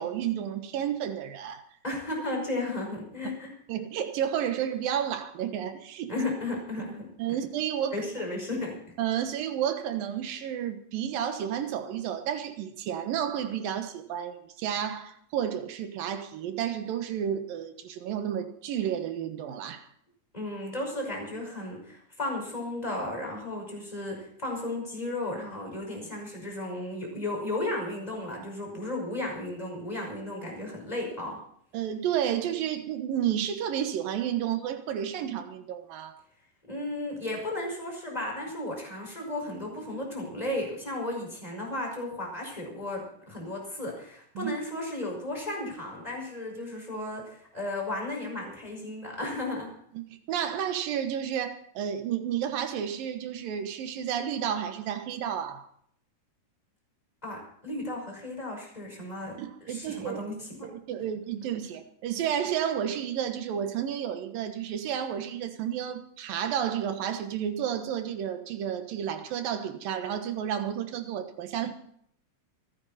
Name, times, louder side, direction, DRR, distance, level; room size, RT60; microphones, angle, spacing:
voice 1, 0.0-1.6 3.7-6.1 7.2-8.0 9.0-19.9 31.7-36.2 44.4-44.5 49.9-55.7 59.4-60.2 60.6-71.7, right 9 dB, 85° right, 3.1 m, -31 dB
voice 2, 1.8-3.5 6.1-7.1 7.9-8.8 20.3-31.4 36.7-49.7 57.2-60.7, left 2 dB, 10° left, 5.4 m, -34 dB
28.0 x 9.8 x 4.3 m
omnidirectional pair, 3.9 m